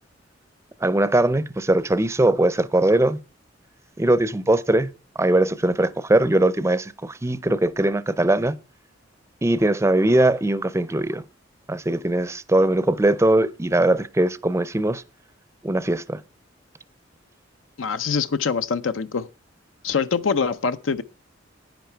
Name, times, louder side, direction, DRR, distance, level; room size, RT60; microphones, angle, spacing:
voice 1, 0.8-3.2 4.0-4.9 5.2-8.5 9.4-11.2 11.7-15.0 15.6-16.2, right 1 dB, 15° right, 0.5 m, -20 dB
voice 2, 17.8-19.3 19.8-21.0, left 5 dB, 85° left, 0.6 m, -24 dB
10.5 x 9.6 x 4.5 m
head